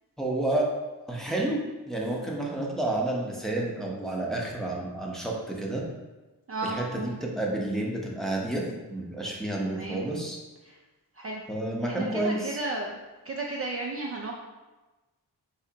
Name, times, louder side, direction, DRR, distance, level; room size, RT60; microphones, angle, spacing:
voice 1, 0.2-0.7 1.1-5.8 6.6-10.4 11.5-12.6, right 1 dB, ahead, -3 dB, 0.8 m, -30 dB
voice 2, 6.5-7.2 9.6-10.0 10.6-10.8 11.2-11.4 11.8-12.9 13.2-14.3, right 2 dB, 35° right, -2 dB, 0.5 m, -34 dB
4.8 x 3.1 x 2.8 m, 1.2 s
wide cardioid pair, 70°, 42 cm